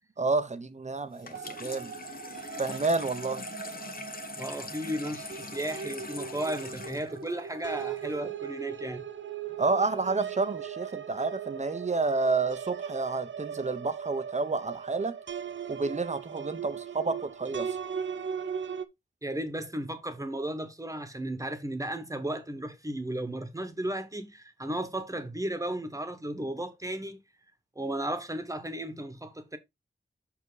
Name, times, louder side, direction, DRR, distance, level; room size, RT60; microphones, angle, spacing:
voice 1, 0.2-1.9 2.6-3.4 9.6-15.2 15.7-17.8, right 3 dB, 35° right, 0.9 m, -30 dB
Water tap faucet / Sink (filling or washing), 1.1-8.2, left 3 dB, 50° left, 1.1 m, -43 dB
sound 1, 1.3-18.9, right 7 dB, 75° right, 0.7 m, -39 dB
voice 2, 4.4-9.0 19.2-27.2 27.7-29.6, right 1 dB, 15° right, 1.3 m, -34 dB
6.2 x 5.7 x 3.9 m
wide cardioid pair, 105°, 20 cm